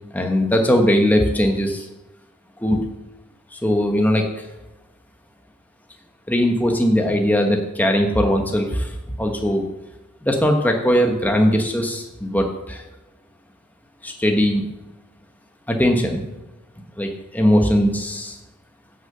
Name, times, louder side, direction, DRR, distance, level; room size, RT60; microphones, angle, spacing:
voice 1, 0.1-1.9 2.6-2.8 3.5-4.4 6.3-9.6 10.2-12.8 14.0-14.6 15.7-16.2 17.0-18.4, equal, 10° left, 3 dB, 1.1 m, -19 dB
11.0 x 6.6 x 7.7 m, 1.0 s
head